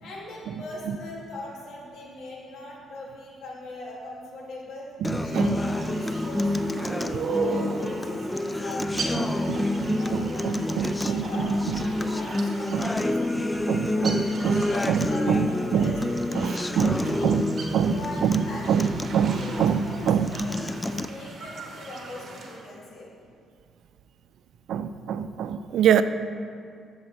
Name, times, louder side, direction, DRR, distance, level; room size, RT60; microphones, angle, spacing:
voice 1, 0.0-4.9 5.2-9.6 10.0-11.5 11.8-13.2 13.9-17.4 17.9-23.1, left 2 dB, 70° left, -5 dB, 2.6 m, -40 dB
Acoustic guitar, 5.0-21.1, left 1 dB, 15° left, 0.4 m, -28 dB
voice 2, 5.0-5.6 9.5-9.6 9.9-11.2 12.7-12.9 13.4-15.5 15.7-15.9 16.4-17.4 17.7-17.9 18.2-18.4 18.7-18.9 19.1-19.8 20.1-20.3 24.7-26.0, right 8 dB, 75° right, 12 dB, 0.4 m, -25 dB
sound 1, 5.6-22.6, right 3 dB, 50° right, 1.4 m, -37 dB
13.0 x 7.3 x 3.4 m, 2.2 s
cardioid pair, 90°, 0 cm